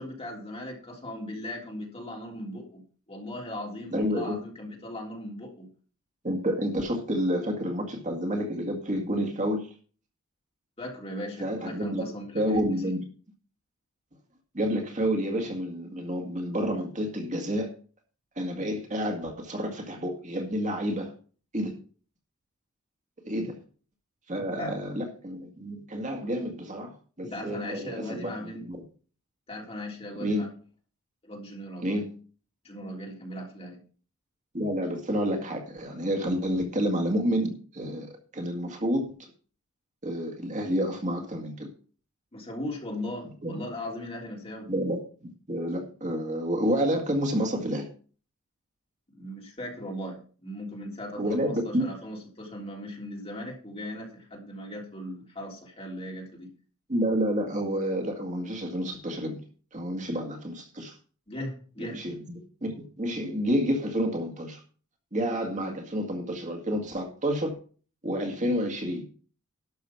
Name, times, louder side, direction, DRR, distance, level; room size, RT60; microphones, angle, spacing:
voice 1, 0.0-5.7 10.8-12.8 24.4-24.8 27.2-28.6 29.5-30.5 31.2-32.0 32.6-33.8 42.3-44.7 49.1-56.5 61.3-62.0, left 1 dB, 30° left, -1 dB, 3.3 m, -38 dB
voice 2, 3.9-4.3 6.2-9.7 11.4-12.1 12.3-13.0 14.5-17.7 18.4-21.1 21.5-21.7 23.2-23.6 24.3-26.9 27.2-28.8 30.2-30.5 31.8-32.1 34.5-38.1 38.3-39.1 40.0-41.7 43.4-43.6 44.7-47.9 51.2-51.9 56.9-59.4 59.7-61.0 61.8-64.6 65.1-67.5 68.0-69.0, equal, 35° right, 3 dB, 1.9 m, -29 dB
12.0 x 6.2 x 5.8 m, 0.41 s
head